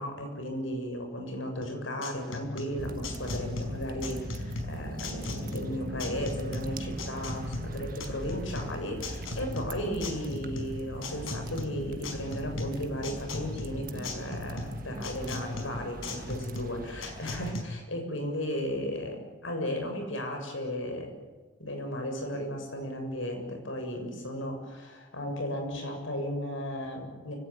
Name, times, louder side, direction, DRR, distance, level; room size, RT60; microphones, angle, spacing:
voice 1, 0.0-21.1 21.6-27.4, equal, 75° left, 4 dB, 7.1 m, -35 dB
sound 1, 1.6-17.6, left 3 dB, 90° left, 4.9 m, -38 dB
sound 2, 2.8-17.5, right 1 dB, 45° right, 1.4 m, -40 dB
29.0 x 17.5 x 9.3 m, 1.3 s
head